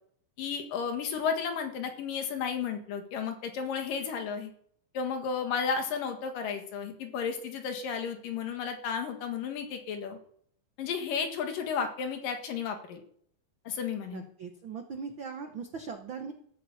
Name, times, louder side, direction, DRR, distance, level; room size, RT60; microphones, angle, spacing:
voice 1, 0.4-4.5 4.9-10.2 10.8-13.0 13.6-14.3, left 6 dB, 70° left, 5 dB, 3.3 m, -33 dB
voice 2, 14.1-16.3, right 5 dB, 90° right, 5 dB, 1.0 m, -39 dB
14.5 x 9.1 x 7.1 m, 0.64 s
omnidirectional pair, 4.1 m